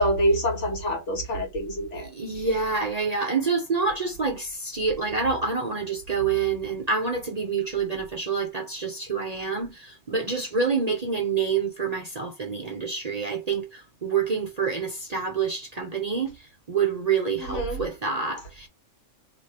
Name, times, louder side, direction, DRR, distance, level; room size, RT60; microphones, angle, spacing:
voice 1, 0.0-2.1 17.4-17.8, equal, 65° left, 1.7 m, -25 dB
voice 2, 1.9-18.7, right 5 dB, 40° right, 0.6 m, -27 dB
3.2 x 2.9 x 4.2 m
omnidirectional pair, 1.3 m